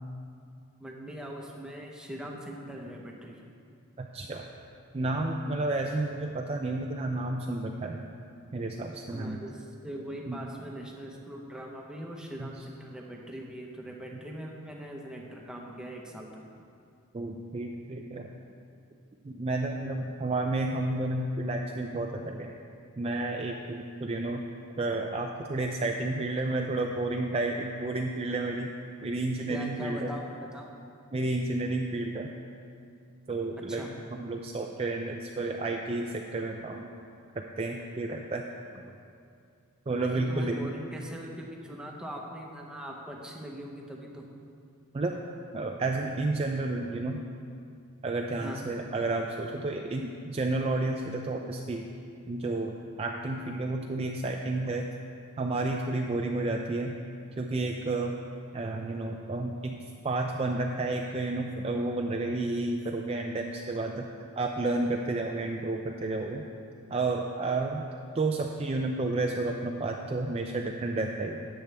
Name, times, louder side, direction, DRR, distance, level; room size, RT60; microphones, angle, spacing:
voice 1, 0.8-3.3 9.1-16.4 29.5-30.7 33.6-33.9 39.9-44.3 48.4-48.8 54.8-54.9, equal, 5° right, -1 dB, 1.0 m, -41 dB
voice 2, 4.0-4.4 4.9-8.1 8.5-9.4 10.3-10.4 12.4-12.5 14.1-14.2 17.1-18.3 19.2-22.5 23.0-24.4 24.8-28.7 29.0-30.1 31.1-32.3 33.3-33.8 34.1-36.9 37.3-38.4 39.9-40.7 44.9-45.2 45.5-47.2 48.0-51.8 52.3-54.9 55.4-57.0 57.4-58.2 58.5-64.1 64.4-66.4 66.9-67.8 68.1-71.5, right 2 dB, 25° right, 2 dB, 0.4 m, -31 dB
13.0 x 8.9 x 3.5 m, 2.5 s
head